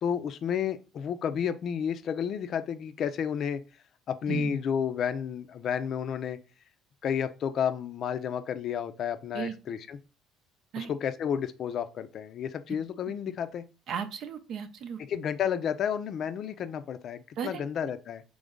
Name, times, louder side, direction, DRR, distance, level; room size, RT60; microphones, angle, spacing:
voice 1, 0.0-3.6 4.1-6.4 7.0-10.0 10.8-13.6 15.1-18.2, left 8 dB, 55° left, 0.5 m, -31 dB
voice 2, 13.9-15.0 17.4-17.6, right 6 dB, 60° right, 0.6 m, -34 dB
3.9 x 3.2 x 3.6 m
hypercardioid pair, 65°, 0 cm